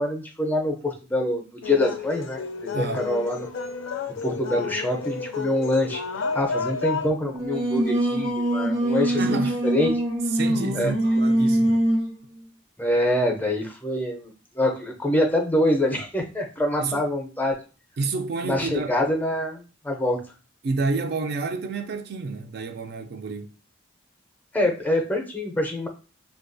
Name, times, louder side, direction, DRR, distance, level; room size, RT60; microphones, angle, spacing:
voice 1, 0.0-3.5 4.2-6.0 6.3-9.9 10.7-10.9 12.8-17.5 18.4-20.2 24.5-25.9, left 1 dB, 10° left, 0.5 m, -25 dB
sound 1, 1.6-7.1, left 5 dB, 90° left, 0.4 m, -31 dB
voice 2, 2.7-3.1 9.1-9.6 10.3-11.9 16.8-17.1 18.0-19.0 20.6-23.5, right 3 dB, 55° right, 0.4 m, -29 dB
Singing, 7.2-12.1, right 1 dB, 90° right, 1.0 m, -23 dB
3.4 x 2.2 x 2.5 m
head